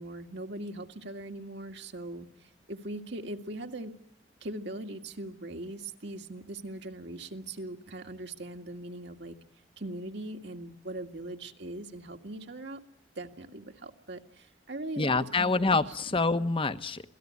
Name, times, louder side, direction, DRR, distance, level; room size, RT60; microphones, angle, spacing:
voice 1, 0.0-4.0 4.4-9.4 9.8-12.8 13.2-15.1 15.4-15.5, right 1 dB, 60° right, 5 dB, 2.1 m, -40 dB
voice 2, 15.0-17.0, left 3 dB, 30° left, 12 dB, 1.1 m, -26 dB
27.0 x 18.5 x 9.7 m, 0.66 s
head